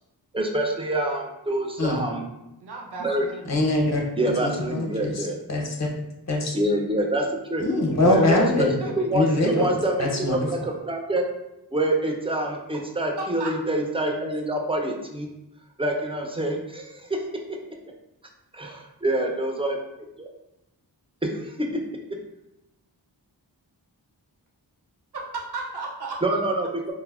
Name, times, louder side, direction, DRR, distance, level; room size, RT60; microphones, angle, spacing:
voice 1, 0.3-2.3 3.0-3.3 4.2-5.4 6.5-7.6 8.0-8.7 9.0-11.2 11.7-15.3 15.8-17.2 18.5-19.8 20.2-20.3 21.2-21.6 26.2-26.9, right 1 dB, 15° right, 1 dB, 0.4 m, -26 dB
voice 2, 2.6-3.5 8.8-9.3 13.2-13.5 25.3-26.2, right 3 dB, 65° right, 0 dB, 0.6 m, -34 dB
voice 3, 3.5-5.9 6.3-6.5 7.6-8.7 9.1-9.7 10.0-10.5, left 2 dB, 40° left, -1 dB, 0.6 m, -23 dB
3.2 x 2.0 x 2.3 m, 0.91 s
wide cardioid pair, 45°, 42 cm